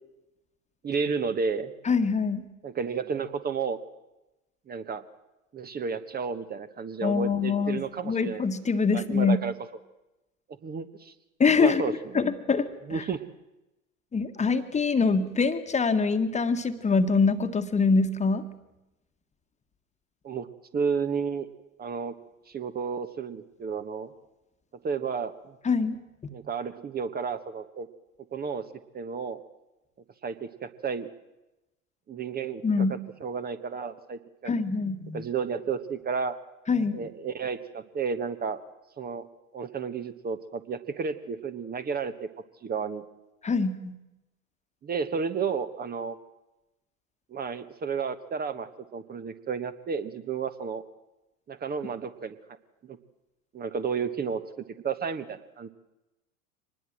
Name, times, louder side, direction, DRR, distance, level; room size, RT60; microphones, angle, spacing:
voice 1, 0.8-1.7 2.6-3.8 4.7-5.0 5.5-8.4 8.9-9.5 10.6-11.1 11.6-11.9 12.9-13.3 20.2-20.5 20.7-21.5 21.8-22.1 22.5-24.1 24.8-25.5 26.3-27.9 28.3-28.6 28.9-29.4 30.2-31.1 32.1-34.5 35.1-36.4 36.9-38.6 39.0-39.3 39.5-42.3 42.6-43.0 44.8-46.2 47.3-50.8 51.5-52.3 52.8-53.0 53.5-54.4 54.8-55.7, right 5 dB, 20° right, 10 dB, 1.2 m, -32 dB
voice 2, 1.8-2.4 7.0-9.4 11.4-13.0 14.1-18.4 25.6-26.0 32.6-32.9 34.4-35.2 36.7-37.0 43.4-43.9, left 4 dB, 15° left, 9 dB, 1.6 m, -24 dB
24.5 x 20.0 x 7.5 m, 0.97 s
figure-of-eight pair, 90°, 43 cm